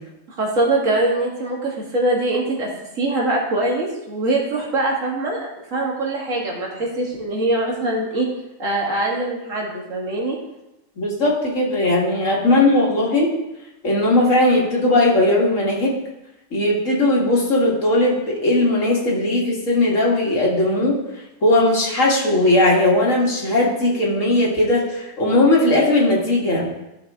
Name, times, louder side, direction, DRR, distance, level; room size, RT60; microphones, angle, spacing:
voice 1, 0.4-2.7 3.0-8.3 8.6-10.4 12.4-12.6, right 2 dB, 85° right, -3 dB, 2.2 m, -23 dB
voice 2, 11.0-13.3 13.8-15.9 16.5-21.0 21.4-26.7, left 1 dB, 80° left, -4 dB, 2.3 m, -18 dB
13.0 x 4.8 x 3.7 m, 0.92 s
omnidirectional pair, 1.3 m